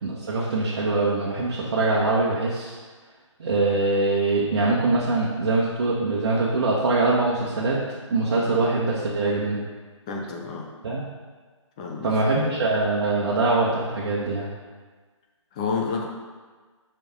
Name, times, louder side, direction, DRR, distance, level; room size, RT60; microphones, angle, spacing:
voice 1, 0.0-2.8 3.4-7.8 8.1-9.6 10.8-11.0 12.0-14.5, right 2 dB, 50° right, -5 dB, 1.3 m, -23 dB
voice 2, 10.1-10.7 11.8-12.1 15.5-16.1, left 5 dB, 15° left, 0 dB, 0.4 m, -29 dB
5.7 x 5.1 x 5.9 m, 1.4 s
hypercardioid pair, 160°, 16 cm